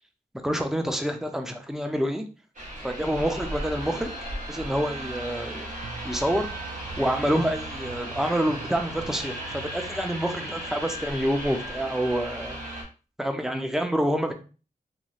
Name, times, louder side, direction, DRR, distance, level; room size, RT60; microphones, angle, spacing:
voice 1, 0.3-2.2 2.8-4.1 4.5-5.7 6.0-6.5 7.0-12.6 13.2-14.3, equal, 5° right, 5 dB, 0.5 m, -27 dB
sound 1, 2.5-12.8, right 1 dB, 55° right, 1.4 m, -36 dB
sound 2, 5.8-11.1, right 7 dB, 70° right, 0.4 m, -45 dB
3.1 x 2.6 x 2.4 m, 0.35 s
cardioid pair, 60°, 16 cm